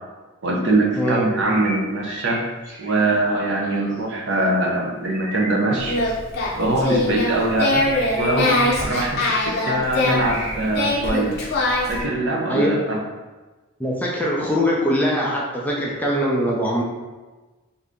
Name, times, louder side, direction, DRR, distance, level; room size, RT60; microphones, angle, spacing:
voice 1, 0.4-2.4 2.8-6.0 6.6-7.9 8.1-11.3 11.9-13.0, right 2 dB, 60° right, -1 dB, 0.6 m, -22 dB
sound 1, 1.4-3.0 3.3-4.2 5.0-6.1 7.8-8.3 8.6-11.4 11.9-12.1, equal, 40° right, 1.0 m, -35 dB
Singing, 5.8-12.0, left 2 dB, 50° left, 0.7 m, -23 dB
voice 2, 13.8-16.8, equal, 10° left, -4 dB, 0.4 m, -22 dB
2.8 x 2.5 x 3.4 m, 1.2 s
head